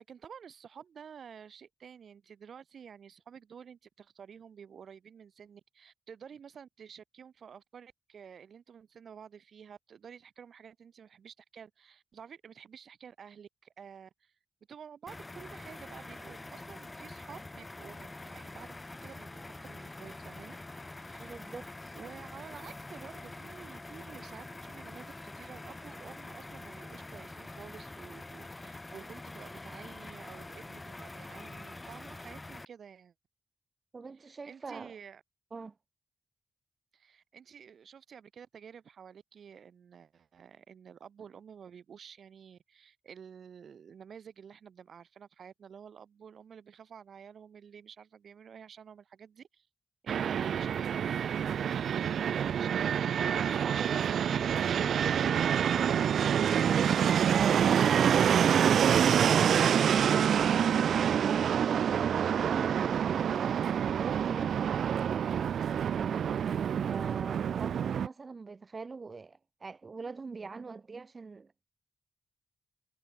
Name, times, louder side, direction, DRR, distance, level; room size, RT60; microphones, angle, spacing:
voice 1, 0.0-14.3 14.7-20.6 21.0-21.4 21.9-33.1 34.2-35.2 36.9-49.7 50.0-51.5 52.0-53.0, right 7 dB, 60° right, 3.5 m, -51 dB
sound 1, 15.1-32.7, left 2 dB, 15° left, 2.5 m, -45 dB
voice 2, 21.2-21.9 33.9-34.9 35.5-35.7 50.4-50.6 53.6-55.9 61.6-63.5 64.0-64.6 65.9-71.5, right 4 dB, 30° right, 2.9 m, -43 dB
Fixed-wing aircraft airplane, 50.1-68.1, right 8 dB, 80° right, 0.8 m, -27 dB
wide cardioid pair, 175°, 0 cm